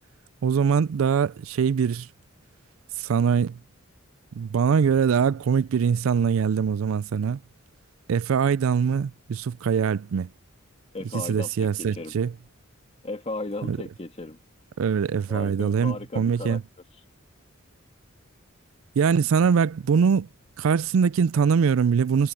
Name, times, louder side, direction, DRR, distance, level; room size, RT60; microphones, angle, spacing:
voice 1, 0.4-2.1 3.0-3.6 4.3-7.4 8.1-10.3 11.1-12.3 13.7-13.8 14.8-16.6 19.0-20.3 20.6-22.3, right 6 dB, 75° right, 0.4 m, -23 dB
voice 2, 10.9-11.5 11.8-12.1 13.0-14.4 15.3-16.6, left 2 dB, 30° left, 1.5 m, -35 dB
head